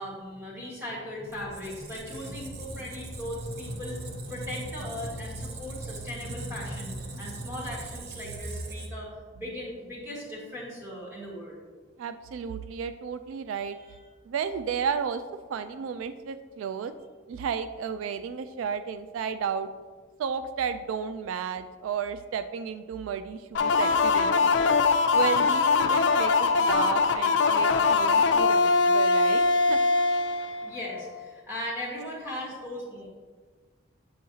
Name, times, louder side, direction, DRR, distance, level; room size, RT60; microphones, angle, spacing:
voice 1, 0.0-11.6 30.6-33.1, left 1 dB, 15° right, -6 dB, 1.6 m, -38 dB
Squeak, 1.3-9.2, right 2 dB, 55° right, 0.6 m, -39 dB
voice 2, 12.0-13.8 14.3-15.2 15.5-16.9 17.3-19.7 20.2-24.6 25.1-29.8, right 7 dB, 85° right, 11 dB, 0.3 m, -33 dB
sound 1, 23.5-31.1, left 4 dB, 65° left, 0.4 m, -22 dB
7.7 x 4.6 x 2.8 m, 1.4 s
head